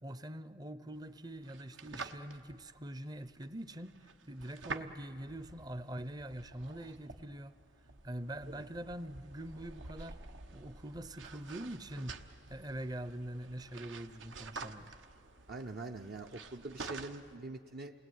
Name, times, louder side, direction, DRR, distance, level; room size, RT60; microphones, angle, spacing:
voice 1, 0.0-4.0 4.3-7.5 8.0-10.2 10.5-12.2 12.5-14.9, right 1 dB, 20° right, 0.6 m, -44 dB
sound 1, 0.9-17.4, right 3 dB, 80° right, 1.1 m, -49 dB
voice 2, 15.5-17.9, right 2 dB, 50° right, 0.7 m, -44 dB
28.5 x 19.5 x 9.3 m
head